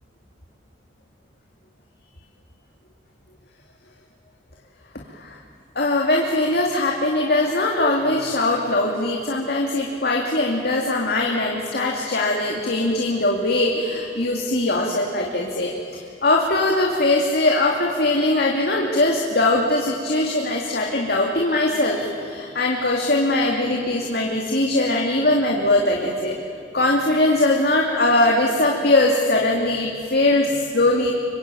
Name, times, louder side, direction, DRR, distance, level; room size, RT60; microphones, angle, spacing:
voice 1, 5.8-15.7 16.2-26.3 26.7-31.1, left 2 dB, 55° left, -1 dB, 2.6 m, -21 dB
26.5 x 23.5 x 9.2 m, 2.6 s
head